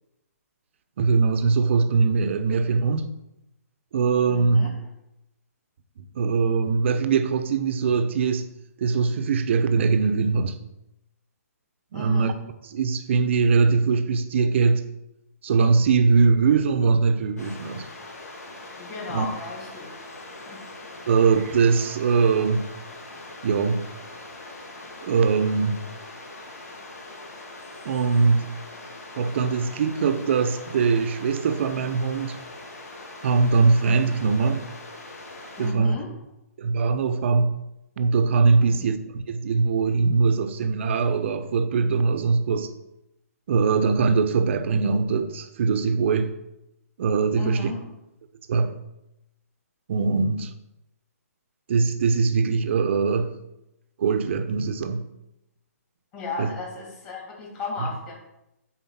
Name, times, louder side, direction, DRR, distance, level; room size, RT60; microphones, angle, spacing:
voice 1, 1.0-3.1 3.9-4.7 6.0-8.5 8.8-10.6 11.9-12.3 12.7-14.9 15.4-17.9 19.1-19.3 21.1-22.7 23.4-23.9 25.0-25.9 27.8-28.5 29.2-32.4 33.2-34.7 35.6-36.0 36.6-37.6 38.0-39.0 39.3-42.7 43.5-46.4 47.0-47.7 48.5-48.8 49.9-50.5 51.7-53.3 54.0-55.1 56.4-56.5, right 4 dB, 45° right, 0.8 m, -22 dB
voice 2, 4.3-4.7 11.9-12.4 18.8-19.9 20.3-20.6 35.6-36.1 38.6-38.8 47.3-47.9 56.1-58.1, left 3 dB, 25° left, 2.9 m, -35 dB
sound 1, 17.4-35.7, left 2 dB, 75° left, 2.3 m, -42 dB
7.9 x 4.4 x 5.8 m
hypercardioid pair, 155°, 9 cm